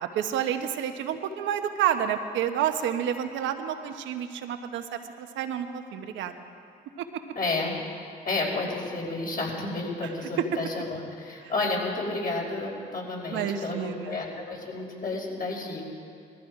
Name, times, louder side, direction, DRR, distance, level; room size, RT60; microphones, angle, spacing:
voice 1, 0.0-6.3 13.3-14.2, right 9 dB, 80° right, 7 dB, 1.1 m, -29 dB
voice 2, 7.4-7.8 8.2-15.9, left 3 dB, 50° left, -2 dB, 5.4 m, -31 dB
20.0 x 14.5 x 4.9 m, 2.5 s
supercardioid pair, 60°, 19 cm